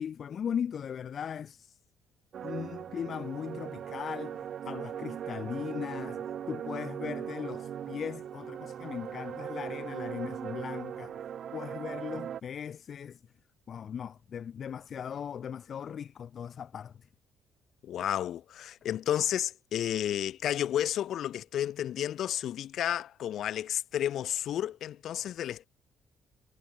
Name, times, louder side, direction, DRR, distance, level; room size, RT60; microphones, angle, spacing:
voice 1, 0.0-1.8 2.4-11.3 11.5-13.2 13.7-17.1, left 8 dB, 45° left, 2.3 m, -38 dB
sound 1, 2.3-12.4, right 9 dB, 55° right, 1.2 m, -39 dB
voice 2, 17.8-25.7, left 11 dB, 65° left, 1.9 m, -31 dB
cardioid pair, 125°, 0 cm